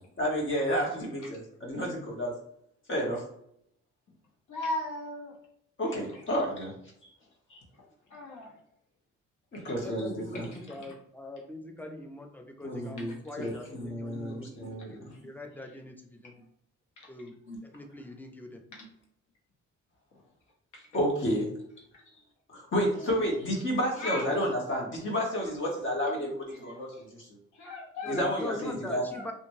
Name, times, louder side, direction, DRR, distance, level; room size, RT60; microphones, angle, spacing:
voice 1, 0.2-2.3 2.9-3.2 5.8-6.7 7.0-7.1 7.5-7.6 9.5-10.6 12.6-15.1 17.5-17.6 20.9-21.5 22.5-27.3 28.1-29.0, equal, 40° left, -2 dB, 1.2 m, -31 dB
voice 2, 4.5-5.3 8.1-8.5 24.0-24.3 27.6-28.2 29.1-29.2, left 2 dB, 75° left, -1 dB, 1.1 m, -35 dB
voice 3, 9.8-14.5 14.9-16.3 17.1-17.4 17.6-18.6 28.0-29.3, left 1 dB, 5° left, 3 dB, 0.4 m, -42 dB
2.8 x 2.5 x 2.7 m, 0.71 s
cardioid pair, 95°, 30 cm